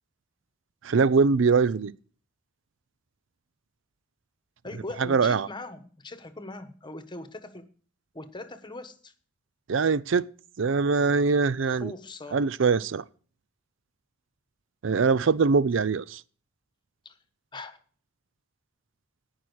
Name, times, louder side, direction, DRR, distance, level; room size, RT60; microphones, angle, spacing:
voice 1, 0.8-1.9 5.1-5.5 9.7-10.3 10.6-11.9 12.3-13.0 14.8-16.2, right 5 dB, 70° right, 0.5 m, -22 dB
voice 2, 4.6-7.7 8.1-9.1 11.7-12.5 17.0-17.2 17.5-17.8, left 2 dB, 25° left, 1.2 m, -41 dB
18.0 x 6.0 x 6.3 m
head